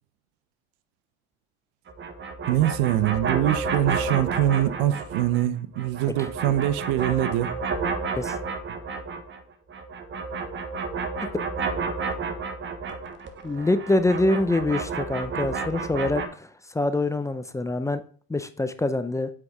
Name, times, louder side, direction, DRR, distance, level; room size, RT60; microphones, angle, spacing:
sound 1, 1.9-5.5 5.7-9.4 9.7-16.3, right 4 dB, 35° right, 1.2 m, -31 dB
voice 1, 2.5-7.6, right 13 dB, 75° right, 0.7 m, -24 dB
voice 2, 13.4-18.0 18.3-19.3, left 2 dB, 10° left, 0.6 m, -25 dB
7.7 x 4.8 x 3.6 m
supercardioid pair, 90°, 32 cm